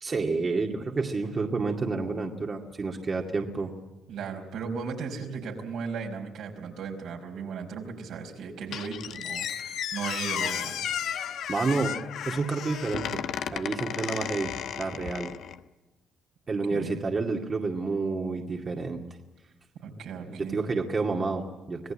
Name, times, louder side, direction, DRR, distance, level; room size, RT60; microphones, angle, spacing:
voice 1, 0.0-3.7 11.5-11.9 12.3-13.2 13.5-14.5 14.8-15.3 16.5-19.0 20.3-21.9, right 3 dB, 35° right, 1 dB, 2.2 m, -29 dB
voice 2, 4.1-10.8 11.3-11.5 16.7-17.0 19.8-20.6, right 5 dB, 80° right, 2 dB, 4.9 m, -36 dB
Squeak, 8.7-15.6, left 9 dB, 75° left, 1.0 m, -33 dB
25.5 x 18.0 x 8.7 m, 1.1 s
cardioid pair, 90°, 0 cm